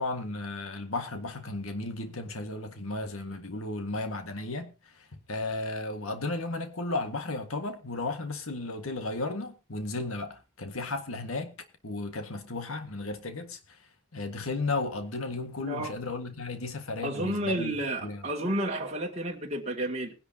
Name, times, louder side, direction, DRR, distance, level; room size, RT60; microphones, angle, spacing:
voice 1, 0.0-11.5 11.8-13.6 14.1-17.8 18.0-18.2, left 2 dB, 85° left, 1.8 m, -34 dB
voice 2, 15.6-15.9 17.0-20.1, right 1 dB, 30° right, 2.3 m, -31 dB
20.5 x 11.0 x 2.8 m
head